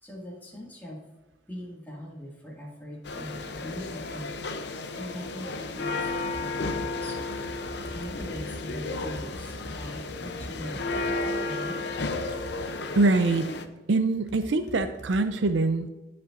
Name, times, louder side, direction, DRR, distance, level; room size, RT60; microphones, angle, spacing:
voice 1, 0.0-1.0 1.5-4.3 4.9-6.1 6.4-7.2 7.9-11.1 11.4-11.8, left 1 dB, 10° left, -4 dB, 2.1 m, -41 dB
sound 1, 3.0-13.7, left 3 dB, 65° left, 0.6 m, -33 dB
sound 2, 6.3-11.3 12.1-12.7 14.1-15.3, equal, 40° left, 0.9 m, -43 dB
voice 2, 12.9-13.5 13.9-15.9, right 3 dB, 80° right, 8 dB, 0.5 m, -23 dB
15.0 x 5.5 x 2.5 m, 1.1 s
head